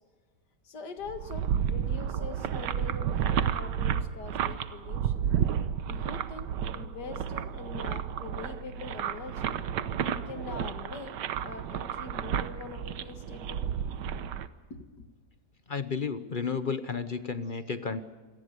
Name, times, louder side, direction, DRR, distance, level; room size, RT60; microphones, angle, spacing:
voice 1, 0.6-5.2 5.9-9.5 10.3-11.2 11.4-13.6 14.7-14.9, left 5 dB, 75° left, 8 dB, 2.3 m, -43 dB
sound 1, 1.0-14.5, right 9 dB, 85° right, 1.5 m, -31 dB
voice 2, 15.7-18.0, left 5 dB, 40° left, 11 dB, 0.8 m, -32 dB
27.0 x 18.5 x 6.7 m, 1.4 s
omnidirectional pair, 1.8 m